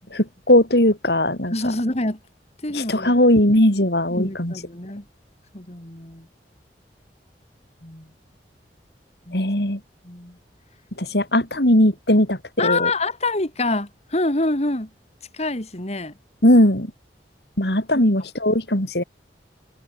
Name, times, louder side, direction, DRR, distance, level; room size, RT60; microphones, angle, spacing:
voice 1, 0.1-1.5 2.7-4.5 9.3-9.8 11.0-12.9 16.4-16.9 17.6-19.0, left 1 dB, 65° left, 5.8 m, -18 dB
voice 2, 1.5-2.2 2.6-3.1 4.1-5.0 5.5-6.3 7.8-8.1 9.3-9.5 10.0-10.4 12.6-14.9 15.3-16.1 17.9-18.0, left 2 dB, 40° left, 3.2 m, -26 dB
head